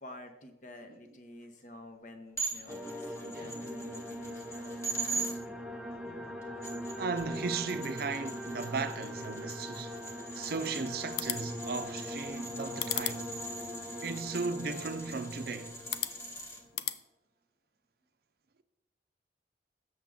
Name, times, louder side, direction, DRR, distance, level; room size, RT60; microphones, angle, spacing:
voice 1, 0.0-5.6, left 1 dB, 45° left, 0.9 m, -50 dB
sound 1, 2.4-5.3 6.4-16.6, right 2 dB, 15° left, 1.1 m, -42 dB
sound 2, 2.7-16.7, equal, 5° right, 0.5 m, -41 dB
voice 2, 7.0-10.0 10.3-13.3 14.0-15.8, right 4 dB, 55° right, 0.5 m, -36 dB
sound 3, 11.0-17.0, left 12 dB, 65° left, 0.4 m, -41 dB
7.3 x 6.4 x 3.6 m
head